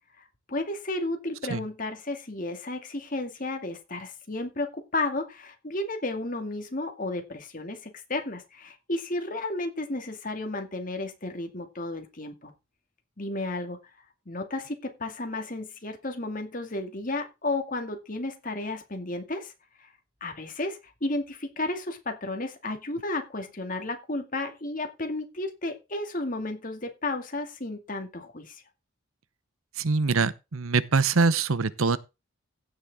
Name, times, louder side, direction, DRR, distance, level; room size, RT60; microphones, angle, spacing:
voice 1, 0.2-12.5 13.2-13.8 14.3-19.5 19.8-19.9 20.2-28.6, left 2 dB, 40° left, 2.3 m, -33 dB
voice 2, 29.8-32.0, right 4 dB, 85° right, 0.8 m, -24 dB
16.0 x 6.7 x 3.6 m
head